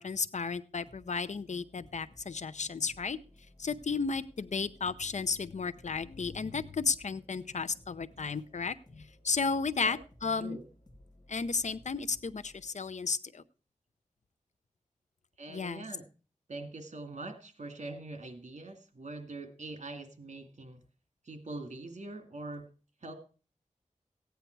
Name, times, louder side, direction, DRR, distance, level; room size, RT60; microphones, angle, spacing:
voice 1, 0.0-3.2 3.6-10.6 11.3-13.4 15.5-15.8, left 4 dB, 65° left, 13 dB, 0.6 m, -33 dB
sound 1, 0.7-12.7, left 1 dB, 30° left, 2.2 m, -59 dB
voice 2, 15.4-16.0 16.5-20.8 21.2-22.7 23.0-23.1, right 2 dB, 60° right, 6 dB, 2.2 m, -43 dB
15.0 x 9.3 x 4.5 m, 0.36 s
wide cardioid pair, 65°, 13 cm